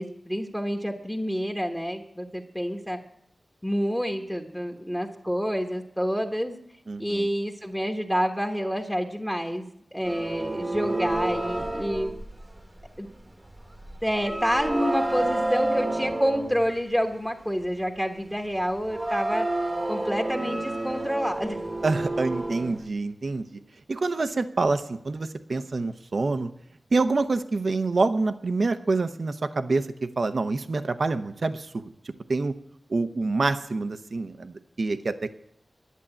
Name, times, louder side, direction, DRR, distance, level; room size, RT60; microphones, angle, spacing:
voice 1, 0.0-3.0 3.6-6.6 7.0-12.1 13.0-13.1 14.0-19.5 19.9-21.6, equal, 5° left, 2 dB, 1.2 m, -28 dB
voice 2, 6.9-7.3 21.8-23.5 23.9-26.5 26.9-31.7 32.3-32.5 32.9-35.3, right 3 dB, 60° right, 10 dB, 0.7 m, -26 dB
sound 1, 10.0-13.0 13.6-16.7 18.9-22.9, right 2 dB, 20° right, 1.1 m, -29 dB
11.0 x 8.3 x 8.8 m, 0.75 s
wide cardioid pair, 95°, 0 cm